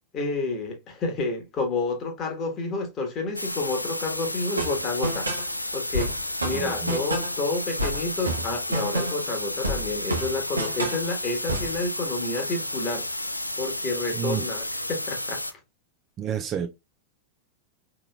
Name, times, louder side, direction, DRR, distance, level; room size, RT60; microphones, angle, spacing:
voice 1, 0.1-5.3 5.7-6.1 6.4-13.1 13.6-15.4, left 3 dB, 30° left, 1.3 m, -29 dB
sound 1, 3.3-15.5, left 1 dB, 85° left, 0.3 m, -32 dB
sound 2, 4.6-5.5 5.9-7.4 7.8-9.3 9.6-11.1 11.5-11.8, right 1 dB, 80° right, 0.9 m, -29 dB
voice 2, 6.5-7.0 14.1-14.5 16.2-16.7, right 9 dB, 30° right, 0.5 m, -30 dB
4.7 x 3.0 x 2.3 m
figure-of-eight pair, 90°, 0 cm